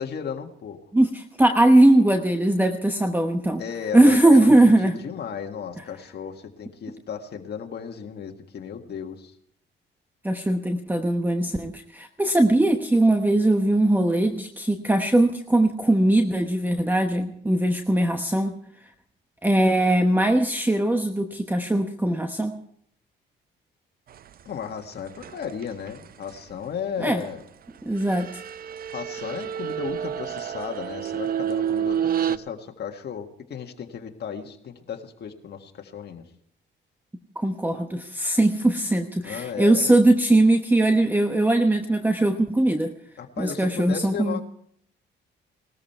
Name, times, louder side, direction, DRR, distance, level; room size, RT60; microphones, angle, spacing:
voice 1, 0.0-0.8 3.6-9.3 24.4-27.4 28.9-36.2 39.2-40.0 43.2-44.4, left 7 dB, 55° left, 3 dB, 1.7 m, -35 dB
voice 2, 0.9-3.6 3.9-5.0 10.2-18.5 19.4-22.6 27.0-27.2 27.8-28.3 37.3-42.9 43.4-44.4, right 1 dB, 10° right, 6 dB, 1.1 m, -20 dB
sound 1, 25.2-26.0 28.0-32.4, right 9 dB, 50° right, 0.6 m, -29 dB
18.5 x 13.5 x 4.5 m, 0.66 s
cardioid pair, 90°, 20 cm